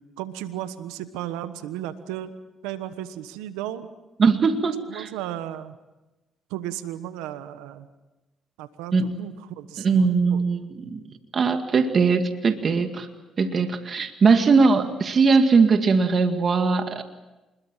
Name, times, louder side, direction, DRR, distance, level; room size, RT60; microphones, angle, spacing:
voice 1, 0.2-2.3 2.6-3.9 4.9-5.8 6.5-7.9 8.6-10.4, right 12 dB, 90° right, 11 dB, 1.2 m, -34 dB
voice 2, 4.2-5.1 8.9-9.1 9.8-11.0 11.3-13.1 13.4-17.0, right 4 dB, 50° right, 7 dB, 2.1 m, -20 dB
26.0 x 21.5 x 7.4 m, 1.1 s
supercardioid pair, 60°, 0 cm